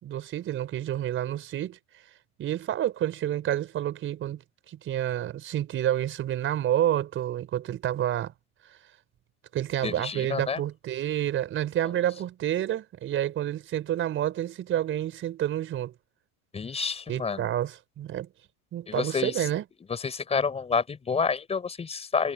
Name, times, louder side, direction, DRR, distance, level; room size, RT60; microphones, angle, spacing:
voice 1, 0.0-1.8 2.4-8.3 9.5-15.9 17.1-18.3 18.7-19.6, right 12 dB, 25° right, 5.0 m, -29 dB
voice 2, 9.8-10.6 16.5-17.5 18.9-19.4 19.9-22.3, left 5 dB, 15° left, 4.6 m, -29 dB
supercardioid pair, 140°, 44 cm